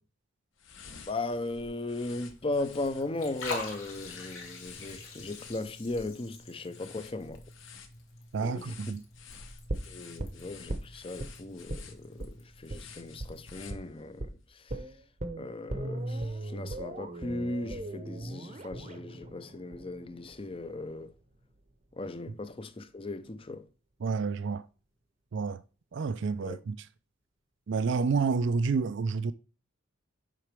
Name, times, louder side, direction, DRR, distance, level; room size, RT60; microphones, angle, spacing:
sound 1, 0.6-14.3, left 5 dB, 60° left, 1.0 m, -52 dB
voice 1, 1.1-7.4 8.4-8.7 9.9-14.8 15.4-21.1 21.9-23.7 26.4-26.6, left 2 dB, 25° left, 0.5 m, -37 dB
Liquid, 2.3-13.7, left 3 dB, 80° left, 2.2 m, -46 dB
voice 2, 8.3-9.0 24.0-24.7 25.3-25.6 25.9-26.9 27.7-29.3, right 4 dB, 55° right, 0.4 m, -29 dB
sound 2, 9.7-11.3 11.7-11.9 12.2-12.3 12.7-12.8 13.2-13.3 13.7-13.9 14.2-14.3 14.7-20.7 21.0-21.1, right 1 dB, 30° right, 0.7 m, -38 dB
7.5 x 4.9 x 3.4 m
head